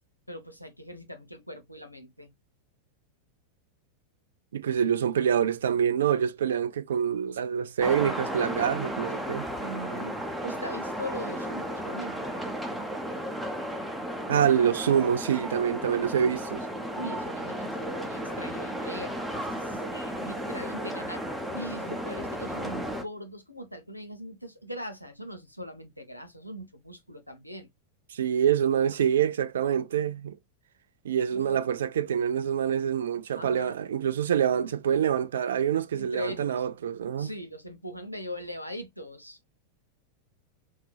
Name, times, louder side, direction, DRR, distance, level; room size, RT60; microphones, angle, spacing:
voice 1, 0.3-2.3 9.6-10.2 10.4-12.4 16.9-21.2 21.5-27.7 31.3-31.6 33.4-33.8 36.0-36.7 37.2-39.4, equal, 90° left, 0.7 m, -40 dB
voice 2, 4.5-9.5 14.3-16.7 28.1-30.4 31.0-37.3, right 8 dB, 65° right, 0.3 m, -26 dB
sound 1, 7.8-23.0, equal, ahead, 0.8 m, -34 dB
3.9 x 2.7 x 2.2 m
figure-of-eight pair, 90°, 0 cm